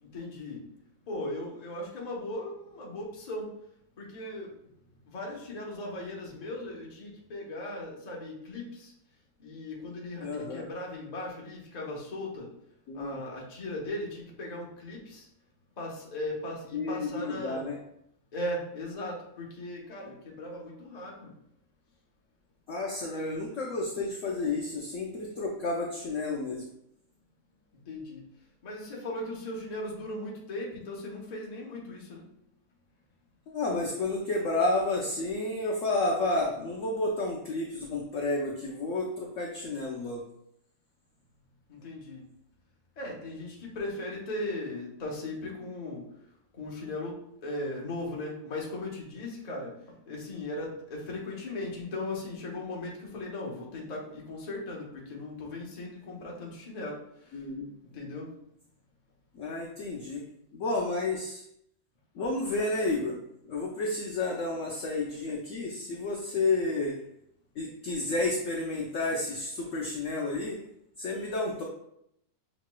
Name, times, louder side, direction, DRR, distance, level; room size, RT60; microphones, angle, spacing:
voice 1, 0.0-0.6 1.1-3.5 4.0-4.5 5.1-8.9 9.4-12.5 12.9-15.3 15.8-17.7 18.3-21.3 27.9-28.2 28.6-32.2 41.7-42.3 43.0-46.0 46.5-49.7 50.1-57.4 57.8-58.3, left 1 dB, 35° left, -2 dB, 0.6 m, -38 dB
voice 2, 10.2-10.7 12.9-13.2 16.7-17.8 22.7-26.6 33.5-40.2 57.3-57.7 59.3-60.2 60.5-61.4 62.1-63.2 63.4-67.0 67.6-70.6 71.0-71.6, left 2 dB, 70° left, -1 dB, 0.7 m, -31 dB
6.5 x 3.0 x 2.2 m, 0.75 s
omnidirectional pair, 2.0 m